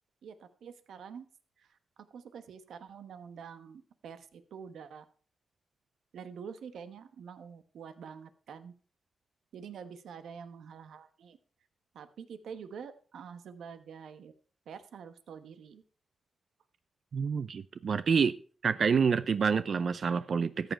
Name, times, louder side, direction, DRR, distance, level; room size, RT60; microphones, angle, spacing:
voice 1, 0.2-1.3 1.6-1.8 2.1-5.0 6.1-8.7 9.5-11.4 11.9-14.3 14.7-15.8, right 7 dB, 85° right, 10 dB, 1.1 m, -46 dB
voice 2, 17.1-18.4 18.6-20.7, right 6 dB, 60° right, 14 dB, 0.4 m, -28 dB
14.0 x 7.9 x 4.4 m, 0.41 s
cardioid pair, 90°, 0 cm